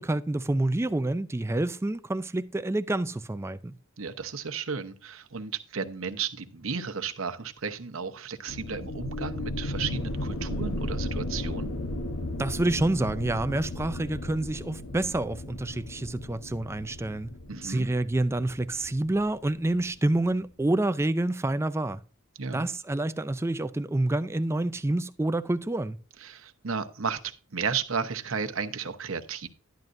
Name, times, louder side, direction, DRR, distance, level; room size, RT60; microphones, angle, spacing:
voice 1, 0.0-3.7 12.4-17.3 17.6-22.0 22.5-26.0, right 2 dB, 10° right, 0.4 m, -28 dB
voice 2, 4.0-11.7 17.5-17.9 22.4-22.7 26.2-29.5, right 5 dB, 65° right, 1.0 m, -33 dB
sound 1, 8.5-19.9, left 1 dB, 85° left, 1.0 m, -35 dB
12.0 x 10.5 x 2.6 m
head